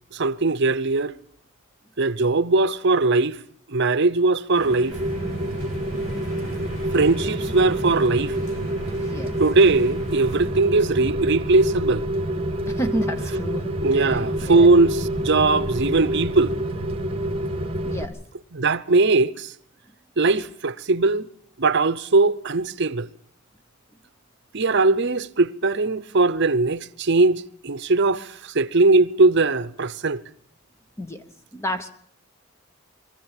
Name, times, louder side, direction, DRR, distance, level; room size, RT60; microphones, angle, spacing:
voice 1, 0.1-1.1 2.0-3.4 3.7-5.0 6.9-8.3 9.4-12.0 13.8-16.5 18.5-19.5 20.2-21.3 21.6-23.1 24.5-30.2, right 3 dB, 55° right, 0.8 m, -20 dB
sound 1, 4.5-10.5, left 1 dB, 75° left, 6.9 m, -40 dB
Rain, 4.9-18.0, right 1 dB, 25° right, 1.9 m, -27 dB
voice 2, 8.9-9.3 12.7-14.7 17.8-18.2 31.0-31.2 31.5-31.9, equal, 15° left, 0.9 m, -30 dB
23.0 x 14.5 x 9.0 m
head